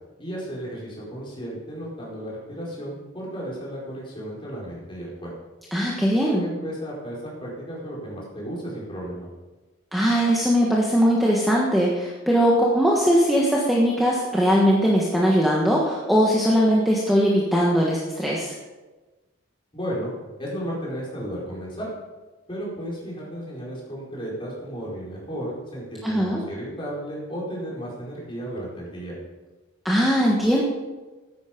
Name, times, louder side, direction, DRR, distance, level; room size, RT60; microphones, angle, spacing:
voice 1, 0.2-5.3 6.1-9.3 19.7-20.1 20.4-21.9 22.5-29.1, equal, 25° left, -5 dB, 4.7 m, -34 dB
voice 2, 5.7-6.5 9.9-18.5 26.0-26.4 29.8-30.6, equal, ahead, -4 dB, 1.4 m, -20 dB
14.0 x 10.5 x 5.2 m, 1.2 s
head